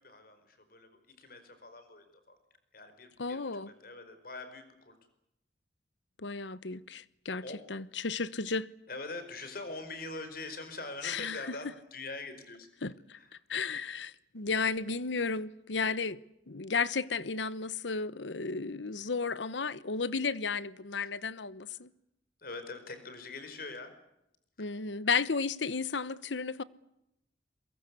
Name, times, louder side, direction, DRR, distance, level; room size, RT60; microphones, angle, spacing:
voice 1, 0.0-2.4 2.7-4.9 7.4-7.6 8.9-12.7 13.1-13.3 21.0-21.1 22.4-24.0 24.6-24.7, left 3 dB, 55° left, 5.0 m, -44 dB
voice 2, 3.2-3.7 6.2-8.7 11.0-11.6 12.8-13.2 13.5-16.2 16.5-21.9 24.6-26.6, left 4 dB, 85° left, 1.0 m, -33 dB
23.0 x 22.5 x 8.4 m
head